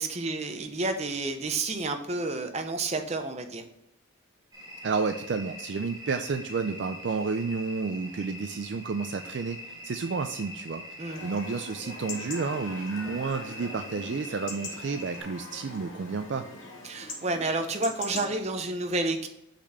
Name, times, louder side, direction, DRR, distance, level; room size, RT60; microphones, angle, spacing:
voice 1, 0.0-3.6 11.0-11.2 16.8-19.3, right 2 dB, 35° right, 6 dB, 0.7 m, -30 dB
sound 1, 4.5-15.2, left 1 dB, 20° right, 1.9 m, -43 dB
voice 2, 4.8-10.8 11.2-16.4, right 4 dB, 60° right, 7 dB, 0.4 m, -31 dB
Chatter / Livestock farm animals working animals / Chirp tweet, 11.1-18.3, left 2 dB, 75° left, 1.9 m, -42 dB
6.0 x 4.2 x 5.6 m, 0.80 s
head